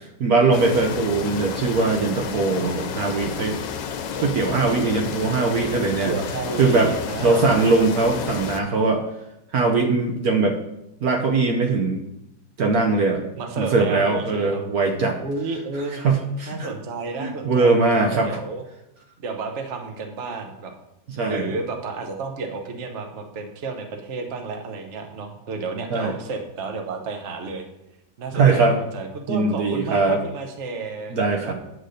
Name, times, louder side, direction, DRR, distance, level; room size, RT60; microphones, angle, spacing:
voice 1, 0.2-3.6 4.2-6.1 6.6-6.9 7.2-9.0 9.5-10.6 11.0-12.0 12.6-13.2 13.6-15.2 15.9-16.7 17.2-18.3 21.1-21.5 25.9-26.1 28.3-28.8 29.3-30.2 31.1-31.5, right 3 dB, 65° right, 3 dB, 1.3 m, -21 dB
sound 1, 0.5-8.6, left 6 dB, 85° left, 1.4 m, -31 dB
voice 2, 5.8-7.9 13.4-14.6 15.2-16.0 16.5-18.6 19.2-20.7 21.2-27.6 28.2-31.2 31.4-31.5, right 4 dB, 45° right, 4 dB, 1.2 m, -32 dB
9.1 x 4.8 x 6.5 m, 0.86 s
omnidirectional pair, 1.9 m